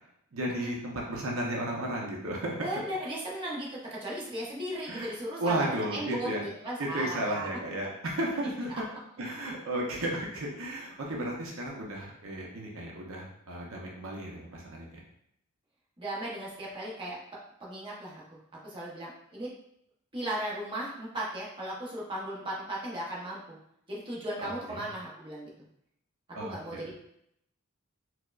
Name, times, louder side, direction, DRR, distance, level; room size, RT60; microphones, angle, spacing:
voice 1, 0.3-2.7 4.9-6.5 6.8-8.7 9.2-15.0 24.4-24.5 26.3-26.9, right 1 dB, 70° right, -2 dB, 0.6 m, -34 dB
voice 2, 2.6-7.5 16.0-17.2 17.6-18.2 18.6-19.5 20.1-23.6 23.9-25.5 26.4-26.9, right 1 dB, 25° right, -6 dB, 0.8 m, -36 dB
4.6 x 2.1 x 2.3 m, 0.75 s
head